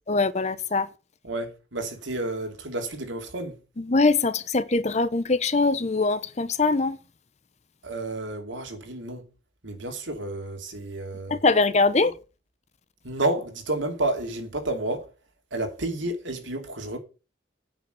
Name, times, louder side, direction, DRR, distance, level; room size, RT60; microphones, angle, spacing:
voice 1, 0.1-0.9 3.9-7.0 11.3-12.1, left 3 dB, 35° left, 0.8 m, -22 dB
voice 2, 1.2-3.6 7.8-9.2 9.6-11.4 12.0-12.1 13.0-15.1 15.5-17.0, right 2 dB, 85° right, 2.8 m, -30 dB
8.9 x 6.1 x 7.9 m
head